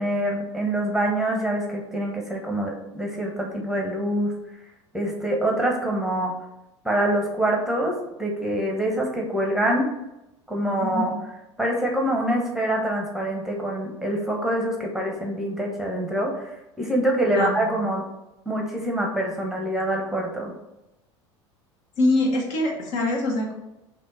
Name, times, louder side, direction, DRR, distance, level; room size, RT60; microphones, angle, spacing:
voice 1, 0.0-4.3 4.9-6.3 6.8-9.9 10.5-11.1 11.6-16.5 16.8-18.0 18.5-20.5, right 1 dB, 5° right, 0 dB, 0.9 m, -25 dB
voice 2, 10.8-11.1 17.3-17.7 22.0-23.5, left 2 dB, 55° left, 0 dB, 1.1 m, -24 dB
3.7 x 3.2 x 4.0 m, 0.93 s
figure-of-eight pair, 75°, 15 cm